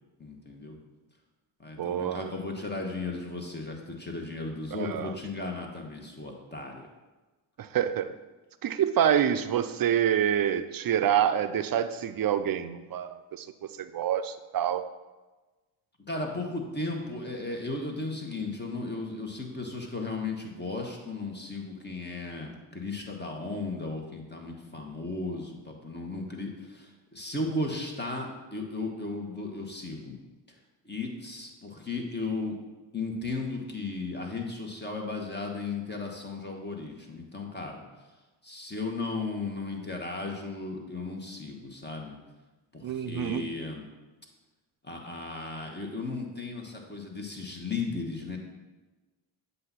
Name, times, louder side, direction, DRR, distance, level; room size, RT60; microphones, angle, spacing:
voice 1, 0.2-0.8 1.6-6.9 16.1-30.2 30.8-32.6 32.9-37.8 38.4-42.2 42.7-43.8 44.8-48.4, left 3 dB, 25° left, 1 dB, 1.4 m, -35 dB
voice 2, 1.8-2.3 4.7-5.1 7.6-8.2 8.6-13.5 13.8-14.8 42.8-43.5, right 9 dB, 50° right, 11 dB, 0.5 m, -27 dB
7.6 x 2.8 x 5.7 m, 1.2 s
supercardioid pair, 40°, 44 cm